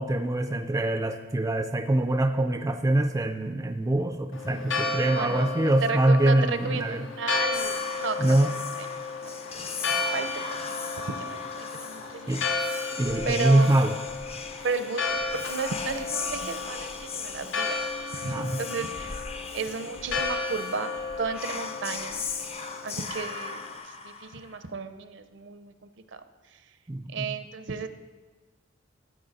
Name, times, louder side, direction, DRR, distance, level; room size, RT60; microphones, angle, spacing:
voice 1, 0.0-7.1 8.2-8.5 12.3-12.4 13.0-14.0 18.3-18.6 26.9-27.3, right 1 dB, 15° right, 7 dB, 0.4 m, -24 dB
Church bell, 4.3-23.8, left 4 dB, 80° left, 1.1 m, -33 dB
voice 2, 4.8-8.9 9.2-12.4 12.8-13.0 13.2-13.8 14.6-19.2 19.5-22.2 22.8-26.2 26.5-26.6 27.1-27.9, right 4 dB, 65° right, 10 dB, 0.6 m, -34 dB
Whispering, 7.5-24.6, left 5 dB, 30° left, 0.6 m, -38 dB
13.0 x 7.8 x 4.1 m, 1.3 s
head